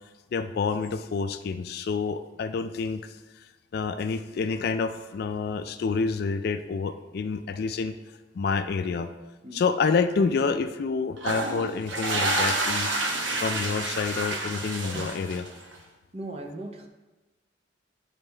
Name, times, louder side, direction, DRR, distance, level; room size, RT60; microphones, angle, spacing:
voice 1, 0.3-3.0 3.7-7.9 8.3-9.1 9.5-12.9 13.4-15.5, left 5 dB, 55° left, 10 dB, 0.3 m, -28 dB
sound 1, 11.2-15.7, right 2 dB, 85° right, 1.0 m, -29 dB
voice 2, 16.1-16.9, right 1 dB, 35° right, 4 dB, 0.6 m, -37 dB
8.9 x 4.1 x 3.3 m, 1.1 s
head